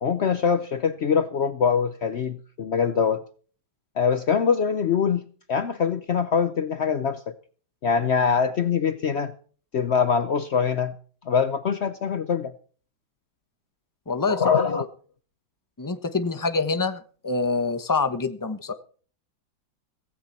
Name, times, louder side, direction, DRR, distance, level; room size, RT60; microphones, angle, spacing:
voice 1, 0.0-3.2 4.0-7.3 7.8-9.3 9.7-10.9 11.3-12.5 14.3-14.8, left 6 dB, 80° left, 0.5 m, -23 dB
voice 2, 14.1-14.9 15.8-18.7, left 4 dB, 15° left, 0.7 m, -26 dB
16.5 x 15.5 x 4.4 m
omnidirectional pair, 2.2 m